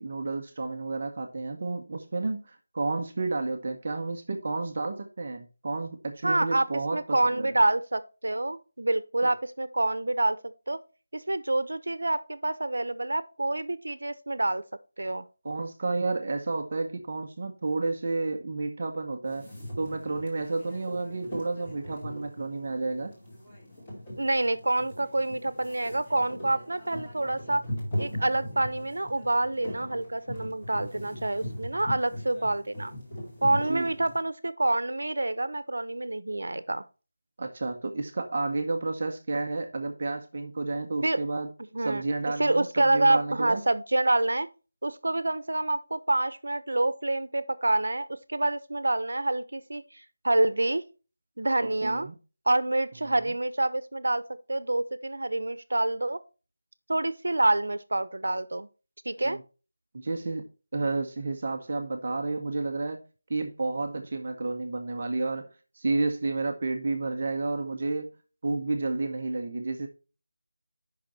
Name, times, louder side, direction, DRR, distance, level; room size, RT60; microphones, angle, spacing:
voice 1, 0.0-7.5 15.4-19.5 19.8-23.1 33.7-33.9 37.4-41.5 41.8-43.6 51.6-52.1 53.1-53.2 59.2-59.4 59.9-60.5 60.7-63.0 63.3-68.1 68.4-69.9, right 3 dB, 30° right, 0.8 m, -31 dB
voice 2, 6.2-6.7 6.9-10.8 11.1-14.6 15.0-15.2 24.2-27.6 28.0-32.9 33.4-36.8 41.0-41.2 41.7-42.0 42.4-44.5 44.8-50.8 51.4-52.1 52.5-56.2 56.9-58.7 59.0-59.4, right 2 dB, 80° right, 0.9 m, -27 dB
sound 1, 19.2-34.2, left 1 dB, 20° left, 2.3 m, -40 dB
8.9 x 5.8 x 4.1 m
figure-of-eight pair, 180°, 0 cm